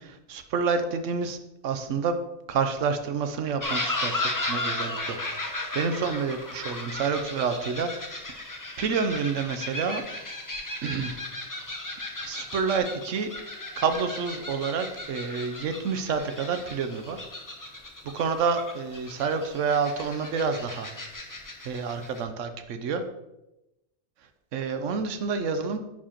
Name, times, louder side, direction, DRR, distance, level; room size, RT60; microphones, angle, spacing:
voice 1, 0.0-1.4 1.6-2.2 2.5-5.2 5.4-7.9 8.2-8.4 8.8-10.0 10.8-11.2 12.2-13.3 13.8-17.3 18.1-20.9 21.6-23.0 24.5-25.8, right 5 dB, 75° right, 8 dB, 1.0 m, -28 dB
sound 1, 3.6-22.2, left 2 dB, 20° left, 0.7 m, -35 dB
10.0 x 4.8 x 2.9 m, 0.93 s
omnidirectional pair, 1.3 m